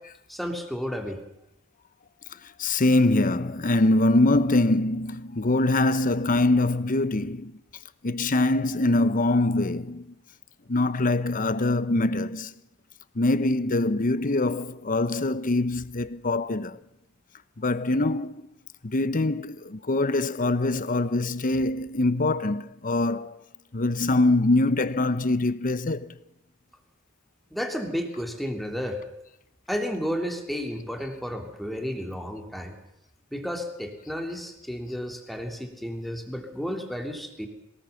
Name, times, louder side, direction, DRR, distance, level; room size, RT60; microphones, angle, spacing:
voice 1, 0.3-1.2 27.5-29.0 29.7-32.7 33.3-37.5, equal, ahead, 3.1 m, -32 dB
voice 2, 2.6-7.5 8.0-10.0 10.7-12.5 13.2-16.8 17.6-18.5 18.8-23.4 23.7-26.1, left 2 dB, 40° left, 0.9 m, -23 dB
23.0 x 19.5 x 7.1 m
head